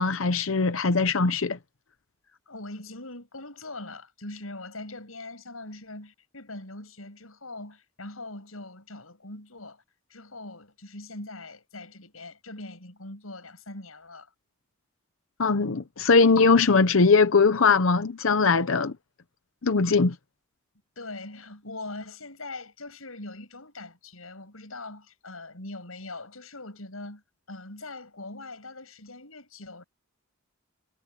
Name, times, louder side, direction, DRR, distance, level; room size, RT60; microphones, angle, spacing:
voice 1, 0.0-1.6 15.4-18.9 19.6-20.1, left 4 dB, 70° left, 0.8 m, -21 dB
voice 2, 2.3-9.8 10.1-14.3 21.0-27.2 27.5-29.8, left 2 dB, 90° left, 7.4 m, -42 dB
head